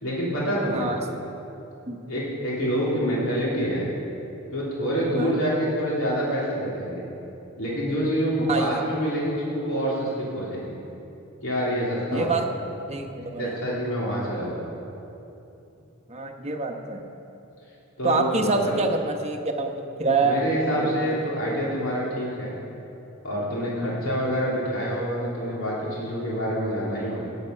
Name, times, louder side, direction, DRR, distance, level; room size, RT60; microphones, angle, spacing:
voice 1, 0.0-0.9 2.1-3.9 4.5-7.0 7.6-10.7 11.4-12.3 12.9-13.0 13.4-14.6 18.0-18.7 20.2-22.5 23.2-27.2, equal, 75° left, -6 dB, 2.9 m, -27 dB
voice 2, 0.7-1.0 1.9-2.0 5.2-5.3 8.5-8.8 12.1-12.4 12.9-13.5 16.1-17.0 18.0-19.7 20.0-21.1 23.8-23.9, right 3 dB, 30° right, 3 dB, 1.0 m, -26 dB
18.0 x 8.1 x 5.7 m, 2.9 s
head